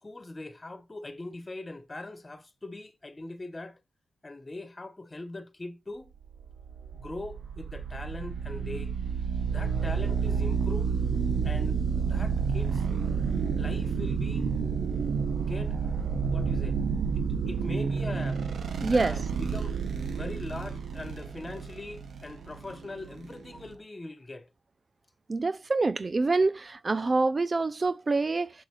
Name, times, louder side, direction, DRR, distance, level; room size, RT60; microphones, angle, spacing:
voice 1, 0.0-3.8 4.2-6.1 6.9-8.9 9.5-10.9 11.4-11.8 12.1-12.8 13.6-14.5 15.4-15.8 16.3-16.8 17.1-18.4 18.8-19.8 20.1-24.5, left 2 dB, 25° left, 1.8 m, -41 dB
sound 1, 6.3-23.7, right 6 dB, 65° right, 1.2 m, -30 dB
voice 2, 18.8-19.2 25.3-28.5, right 3 dB, 35° right, 0.5 m, -26 dB
7.5 x 6.2 x 5.0 m
supercardioid pair, 50°, 0 cm